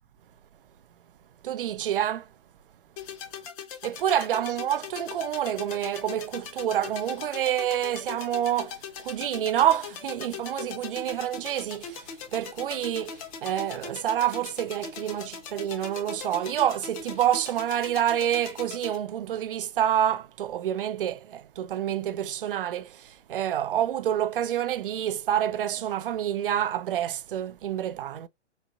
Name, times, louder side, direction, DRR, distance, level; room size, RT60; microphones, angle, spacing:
voice 1, 1.4-2.3 3.8-28.3, right 11 dB, 50° right, 0.5 m, -28 dB
sound 1, 3.0-19.0, left 7 dB, 30° left, 0.9 m, -40 dB
4.1 x 3.4 x 2.6 m
figure-of-eight pair, 130°, 36 cm